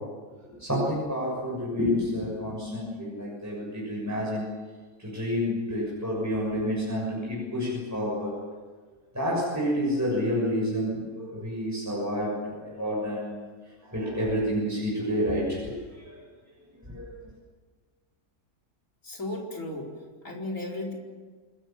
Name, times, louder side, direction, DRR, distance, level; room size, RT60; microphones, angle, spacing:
voice 1, 0.4-4.5 5.0-8.4 9.1-13.4 13.8-16.2 16.9-17.1, equal, 10° right, -5 dB, 6.9 m, -29 dB
voice 2, 19.0-19.9 20.2-21.0, left 2 dB, 55° left, -1 dB, 5.0 m, -34 dB
29.0 x 20.5 x 7.4 m, 1.4 s
omnidirectional pair, 1.7 m